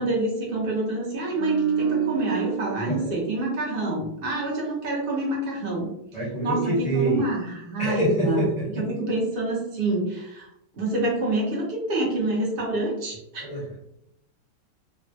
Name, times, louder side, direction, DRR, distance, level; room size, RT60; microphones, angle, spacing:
voice 1, 0.0-5.9 6.4-8.4 8.9-10.5 10.7-13.4, right 2 dB, 55° right, -4 dB, 0.6 m, -27 dB
sound 1, 1.3-4.6 4.9-5.1, right 8 dB, 85° right, 1.4 m, -29 dB
voice 2, 6.1-7.2 7.8-8.9 13.5-13.8, right 1 dB, 30° left, -8 dB, 0.8 m, -25 dB
3.5 x 2.2 x 2.6 m, 0.79 s
omnidirectional pair, 2.3 m